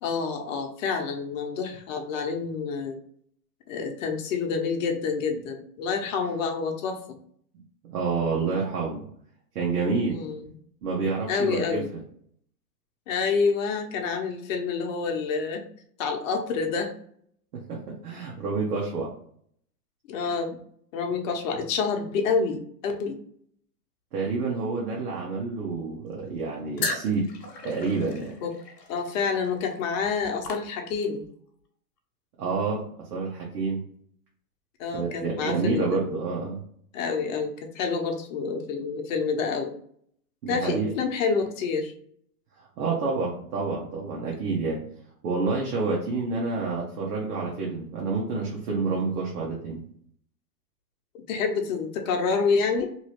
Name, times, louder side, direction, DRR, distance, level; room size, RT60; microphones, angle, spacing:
voice 1, 0.0-3.0 3.7-7.0 10.1-10.4 11.3-11.9 13.1-15.6 16.0-16.9 20.1-20.6 20.9-23.2 28.4-28.5 28.9-31.2 34.8-36.2 36.9-39.7 40.5-41.9 51.3-52.9, left 5 dB, 55° left, 4 dB, 0.9 m, -28 dB
voice 2, 7.8-9.0 9.5-10.2 10.8-12.0 17.5-19.1 24.1-27.3 27.6-28.3 32.4-33.8 34.9-36.6 40.4-40.9 42.6-44.8 45.2-49.8, right 4 dB, 70° right, -3 dB, 1.1 m, -28 dB
sound 1, 26.8-31.3, left 3 dB, 85° left, 1.0 m, -36 dB
2.9 x 2.7 x 3.0 m, 0.63 s
hypercardioid pair, 125°, 48 cm